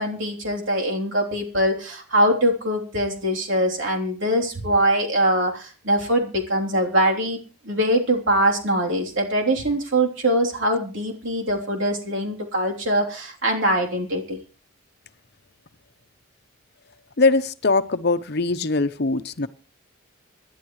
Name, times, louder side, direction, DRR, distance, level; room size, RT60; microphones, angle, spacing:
voice 1, 0.0-7.4 7.6-14.4, right 1 dB, 65° right, 0 dB, 3.3 m, -22 dB
voice 2, 17.2-19.5, left 3 dB, 50° left, 12 dB, 0.8 m, -21 dB
26.5 x 11.5 x 3.2 m, 0.36 s
head